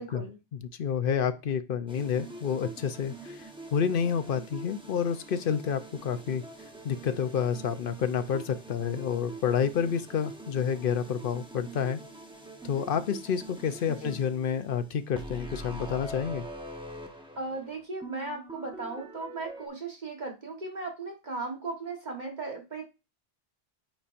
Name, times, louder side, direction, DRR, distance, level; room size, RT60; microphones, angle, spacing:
voice 1, 0.0-0.4 13.9-14.2 17.3-22.8, right 3 dB, 45° right, 2 dB, 1.6 m, -37 dB
voice 2, 0.5-6.4 6.8-12.0 12.6-16.4, left 7 dB, 60° left, 11 dB, 0.8 m, -29 dB
sound 1, 1.9-19.7, right 2 dB, 5° right, 0.9 m, -44 dB
8.9 x 4.3 x 2.5 m, 0.27 s
omnidirectional pair, 1.1 m